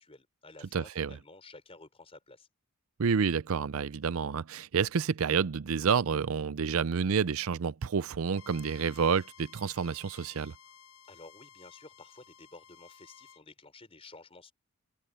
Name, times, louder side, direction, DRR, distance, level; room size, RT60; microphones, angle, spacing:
voice 1, 0.0-2.5 11.1-14.5, left 3 dB, 25° left, 4.6 m, -52 dB
voice 2, 0.7-1.2 3.0-10.5, right 6 dB, 65° right, 0.5 m, -29 dB
Bowed string instrument, 8.3-13.4, left 7 dB, 70° left, 7.6 m, -55 dB
head